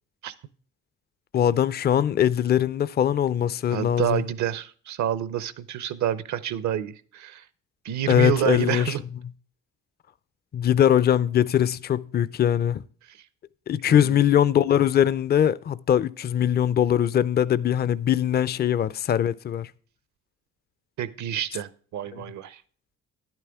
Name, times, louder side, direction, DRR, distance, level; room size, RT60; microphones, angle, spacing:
voice 1, 1.3-4.2 8.1-8.9 10.5-12.8 13.7-19.7 22.1-22.2, left 10 dB, 35° left, 0.4 m, -21 dB
voice 2, 3.7-7.4 7.8-9.0 13.1-13.2 13.8-14.2 21.0-22.6, right 11 dB, 70° right, 0.7 m, -28 dB
11.0 x 9.0 x 3.5 m
cardioid pair, 90°, 30 cm